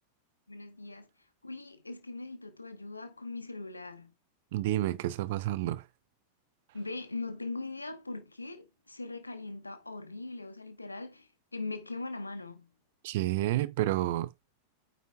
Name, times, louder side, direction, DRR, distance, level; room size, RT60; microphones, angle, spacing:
voice 1, 0.5-1.1 1.4-4.1 6.7-12.7, left 3 dB, 80° left, 1.1 m, -40 dB
voice 2, 4.5-5.9 13.0-14.3, right 15 dB, 50° right, 0.6 m, -30 dB
9.1 x 5.1 x 2.3 m
figure-of-eight pair, 90°, 0 cm